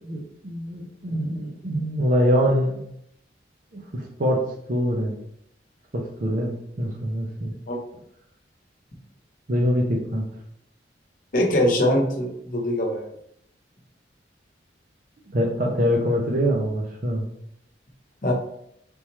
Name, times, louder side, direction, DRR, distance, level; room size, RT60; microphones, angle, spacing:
voice 1, 0.0-2.8 3.7-4.4 4.7-5.1 5.9-7.5 9.5-10.2 15.3-17.2, equal, 50° right, 0 dB, 0.7 m, -24 dB
voice 2, 11.3-13.1 18.2-18.3, left 1 dB, 50° left, 1 dB, 1.0 m, -22 dB
4.2 x 3.5 x 3.1 m, 0.72 s
head